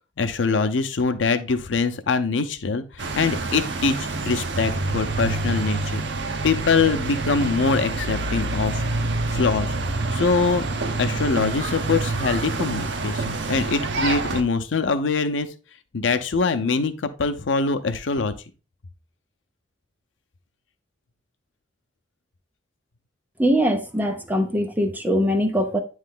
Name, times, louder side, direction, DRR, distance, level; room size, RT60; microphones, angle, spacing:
voice 1, 0.2-6.0 6.4-8.8 9.3-9.7 10.1-10.6 11.0-15.5 15.9-18.3, left 4 dB, 90° left, 0.6 m, -23 dB
sound 1, 3.0-14.4, right 3 dB, 65° right, 0.7 m, -27 dB
voice 2, 23.4-25.8, equal, 10° right, 0.7 m, -22 dB
9.1 x 3.2 x 3.7 m
head